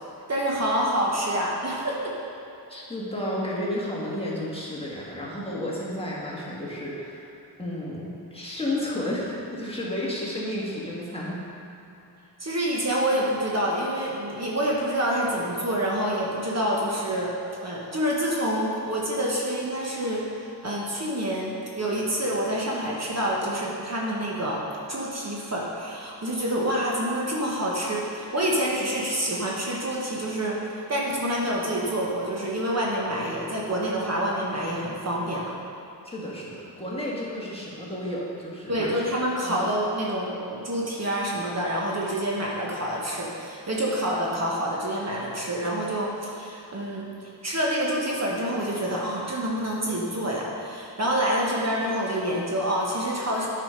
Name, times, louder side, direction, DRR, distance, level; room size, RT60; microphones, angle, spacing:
voice 1, 0.3-2.1 12.4-17.3 17.6-24.6 24.9-30.6 30.9-35.5 38.7-53.5, equal, 40° right, -4 dB, 1.2 m, -27 dB
voice 2, 2.7-7.3 7.6-11.4 36.0-39.0 39.4-39.6, left 1 dB, 15° left, -6 dB, 1.6 m, -32 dB
9.5 x 4.9 x 5.1 m, 2.8 s
wide cardioid pair, 115°, 42 cm